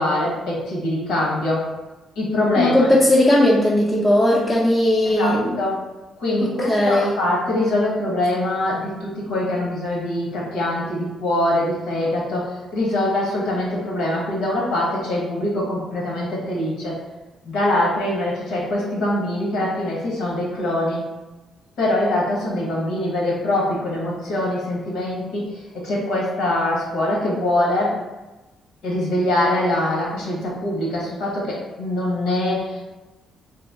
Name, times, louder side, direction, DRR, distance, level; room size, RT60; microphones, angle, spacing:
voice 1, 0.0-1.7 2.2-2.9 5.0-5.8 6.2-17.0 17.4-21.1 21.8-27.9 28.8-32.8, left 1 dB, 85° left, -4 dB, 1.1 m, -23 dB
voice 2, 2.6-5.6 6.4-7.1, left 1 dB, 15° left, -5 dB, 0.5 m, -17 dB
2.9 x 2.1 x 3.6 m, 1.1 s
cardioid pair, 90°, 0 cm